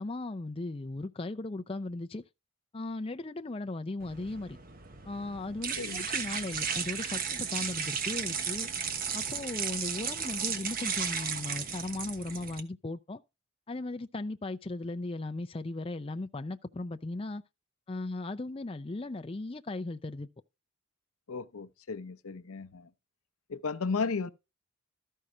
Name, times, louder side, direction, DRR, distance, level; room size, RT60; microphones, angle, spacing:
voice 1, 0.0-2.2 2.7-4.6 5.1-8.7 9.1-13.2 13.7-17.4 17.9-20.3, left 2 dB, 25° left, 0.5 m, -37 dB
sound 1, 4.0-12.6, right 6 dB, 40° right, 1.1 m, -35 dB
voice 2, 21.3-22.9 23.5-24.3, left 4 dB, 90° left, 0.7 m, -34 dB
13.5 x 5.5 x 4.9 m
head